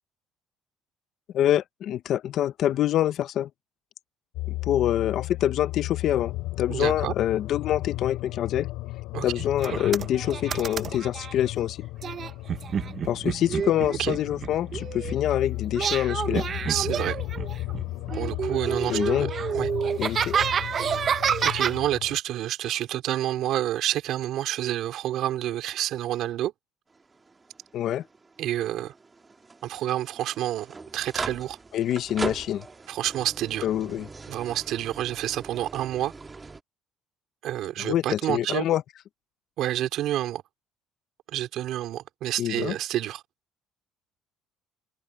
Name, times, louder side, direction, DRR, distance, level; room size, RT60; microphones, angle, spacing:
voice 1, 1.3-3.5 4.5-8.7 9.2-11.9 13.0-16.5 18.9-19.3 20.0-20.4 27.7-28.0 31.7-32.7 33.6-34.1 37.8-38.8 42.4-42.7, left 11 dB, 60° left, 0.8 m, -26 dB
sound 1, 4.3-22.2, left 19 dB, 85° left, 3.5 m, -35 dB
voice 2, 6.7-7.1 9.1-9.5 14.0-14.1 16.7-17.2 18.1-19.3 19.5-19.7 21.4-26.5 28.4-28.9 29.6-31.6 32.9-33.7 34.3-36.1 37.4-38.7 39.6-40.4 41.3-43.2, right 13 dB, 65° right, 3.9 m, -29 dB
sound 2, 9.6-11.3 12.0-15.3 15.7-17.8 18.1-21.8, right 7 dB, 40° right, 0.7 m, -29 dB
sound 3, 26.9-36.6, right 3 dB, 20° right, 2.0 m, -40 dB
cardioid pair, 120°, 0 cm